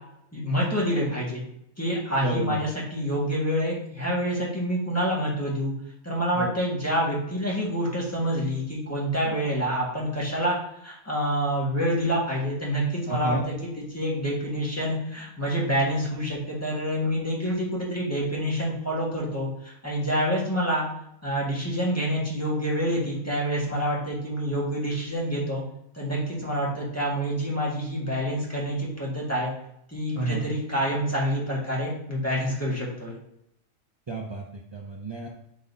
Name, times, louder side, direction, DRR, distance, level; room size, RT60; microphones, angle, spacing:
voice 1, 0.3-1.4 1.8-5.7 6.0-10.6 10.8-20.8 21.2-25.6 25.9-29.5 29.9-33.1, equal, 10° left, -5 dB, 1.7 m, -27 dB
voice 2, 2.2-2.6 6.3-6.5 9.3-9.4 13.1-13.4 30.1-30.4 34.1-35.3, right 2 dB, 40° right, 0 dB, 0.4 m, -31 dB
8.9 x 4.0 x 2.7 m, 0.77 s
omnidirectional pair, 1.3 m